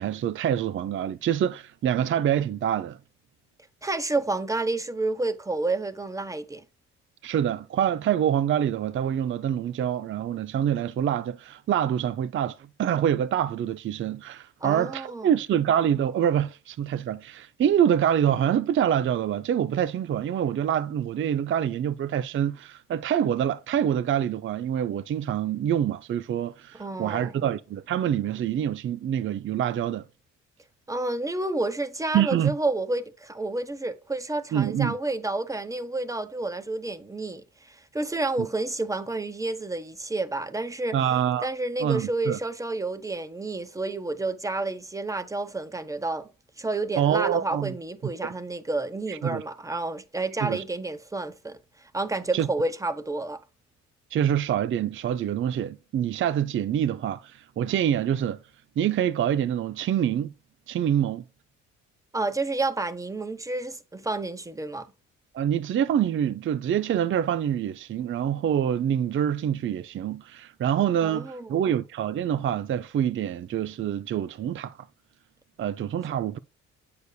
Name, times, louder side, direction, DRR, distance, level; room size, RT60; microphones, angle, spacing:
voice 1, 0.0-3.0 7.2-30.0 32.1-32.5 34.5-35.0 38.4-38.5 40.9-41.5 41.8-42.4 47.0-47.7 48.2-48.3 49.1-49.4 50.4-50.6 52.3-52.5 54.1-58.4 58.8-60.3 60.7-61.2 65.3-74.8 75.6-76.4, right 9 dB, 40° right, 0.4 m, -26 dB
voice 2, 3.8-6.6 14.6-15.3 26.7-27.5 30.9-41.0 41.4-46.3 46.6-51.6 51.9-53.4 62.1-64.9 71.0-71.7, right 2 dB, 10° right, 0.9 m, -30 dB
8.0 x 6.8 x 2.3 m
cardioid pair, 90°, 30 cm